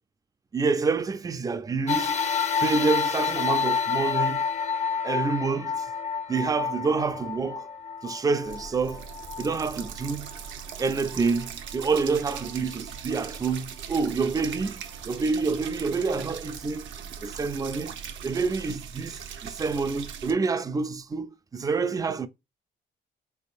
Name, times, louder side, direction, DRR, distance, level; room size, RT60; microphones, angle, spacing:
voice 1, 0.5-2.2 2.6-4.4 5.0-5.9 6.3-7.7 8.0-9.0 9.4-10.3 10.8-16.9 17.2-17.9 18.2-22.3, right 4 dB, 20° right, 0.4 m, -27 dB
sound 1, 1.9-10.5 11.1-11.2 12.3-12.4, left 6 dB, 35° left, 0.6 m, -29 dB
sound 2, 8.5-20.3, right 8 dB, 70° right, 0.6 m, -40 dB
3.8 x 3.5 x 2.5 m
cardioid pair, 90°, 20 cm